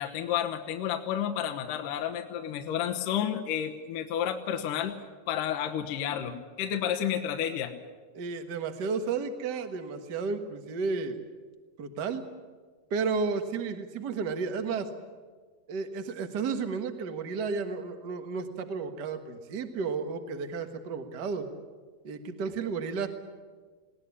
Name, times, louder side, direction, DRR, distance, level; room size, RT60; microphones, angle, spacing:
voice 1, 0.0-5.0 5.3-7.7, left 9 dB, 65° left, 5 dB, 2.5 m, -31 dB
voice 2, 8.1-11.2 11.8-12.2 12.9-14.9 15.7-21.5 22.0-23.1, right 5 dB, 80° right, 7 dB, 0.9 m, -32 dB
21.0 x 19.0 x 9.8 m, 1.5 s
omnidirectional pair, 4.4 m